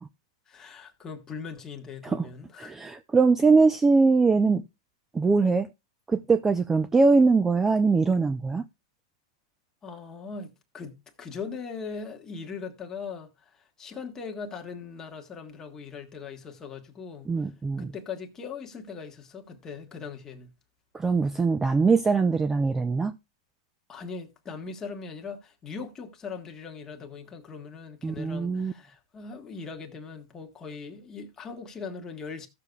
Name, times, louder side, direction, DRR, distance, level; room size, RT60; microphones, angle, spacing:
voice 1, 0.5-2.8 9.8-17.5 17.8-20.5 23.9-32.5, left 5 dB, 20° left, 1.4 m, -40 dB
voice 2, 2.6-4.6 5.1-5.7 6.1-8.6 17.3-17.9 20.9-23.2 28.0-28.7, right 4 dB, 10° right, 0.4 m, -22 dB
16.0 x 6.8 x 2.3 m
hypercardioid pair, 135°, 3 cm